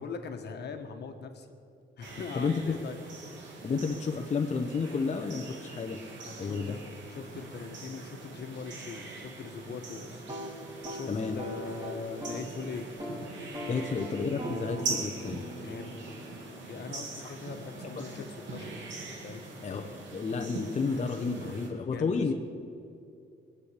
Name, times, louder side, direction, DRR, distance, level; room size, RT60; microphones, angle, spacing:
voice 1, 0.0-1.5 2.0-3.0 6.3-6.8 7.1-10.2 10.9-12.9 13.7-13.8 15.6-16.0 16.6-18.7 19.2-19.4 21.9-22.3, left 5 dB, 65° left, 5 dB, 1.5 m, -41 dB
sound 1, 2.0-21.7, right 3 dB, 85° right, 2.8 m, -42 dB
voice 2, 2.3-2.8 3.6-6.0 6.4-6.8 11.1-11.4 13.7-15.4 19.6-22.3, left 4 dB, 40° left, 2 dB, 1.0 m, -31 dB
sound 2, 10.2-12.5 12.8-13.2 13.5-17.4, equal, 25° right, 3.0 m, -41 dB
20.0 x 8.4 x 8.3 m, 2.6 s
cardioid pair, 90°, 19 cm